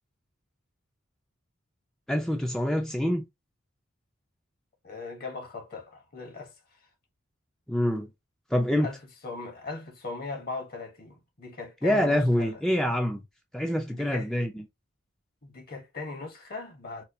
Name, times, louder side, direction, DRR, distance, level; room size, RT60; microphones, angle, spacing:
voice 1, 2.1-3.3 7.7-8.1 8.5-8.9 11.8-13.2 13.5-14.6, equal, 5° left, 0.4 m, -26 dB
voice 2, 4.8-6.8 8.8-9.0 9.2-12.5 13.9-14.3 15.4-17.0, left 3 dB, 50° left, 1.1 m, -39 dB
4.3 x 2.3 x 2.6 m
head